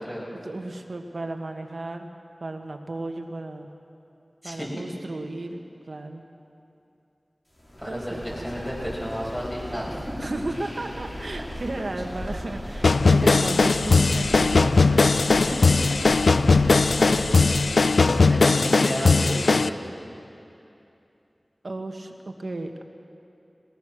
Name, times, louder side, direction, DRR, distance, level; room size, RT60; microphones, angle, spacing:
voice 1, 0.3-2.1 2.4-3.7 4.4-5.6 5.9-6.2 7.9-8.6 10.2-15.3 21.6-22.8, right 2 dB, 70° right, 4 dB, 1.5 m, -34 dB
sound 1, 7.6-18.4, equal, 35° left, 3.2 m, -37 dB
voice 2, 7.8-10.3 13.1-13.2 15.2-15.8 16.2-16.3 16.9-17.6 18.3-19.8, equal, 10° left, -4 dB, 6.9 m, -32 dB
sound 2, 12.8-19.7, left 3 dB, 90° left, 0.4 m, -19 dB
21.5 x 19.5 x 6.3 m, 2.8 s
wide cardioid pair, 40°, 0 cm